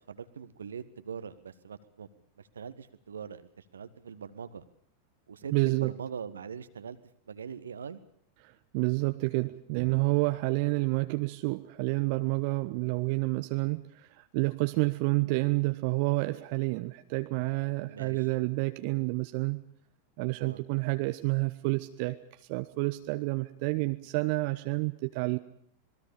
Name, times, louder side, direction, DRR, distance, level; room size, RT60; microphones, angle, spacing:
voice 1, 0.1-2.1 2.5-4.6 5.3-7.0 7.3-8.0 17.8-18.2 20.4-20.6, right 7 dB, 70° right, 12 dB, 1.6 m, -42 dB
voice 2, 5.5-5.9 8.4-19.6 20.2-22.2 22.5-25.4, right 25 dB, 45° right, 9 dB, 1.2 m, -29 dB
27.0 x 21.0 x 7.0 m, 0.65 s
figure-of-eight pair, 90°, 0 cm